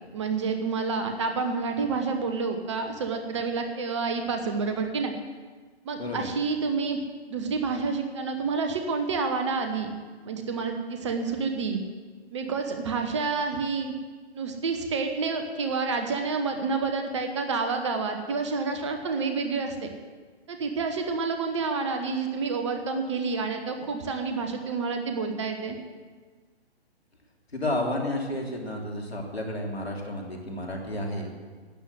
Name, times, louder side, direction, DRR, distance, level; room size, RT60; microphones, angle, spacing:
voice 1, 0.1-5.1 5.8-7.0 7.3-9.9 10.2-11.8 12.3-13.9 14.3-19.9 20.5-25.8, right 4 dB, 25° right, 5 dB, 1.0 m, -29 dB
voice 2, 27.5-31.3, left 1 dB, 70° left, 1 dB, 3.1 m, -31 dB
12.0 x 9.2 x 7.9 m, 1.5 s
figure-of-eight pair, 140°, 33 cm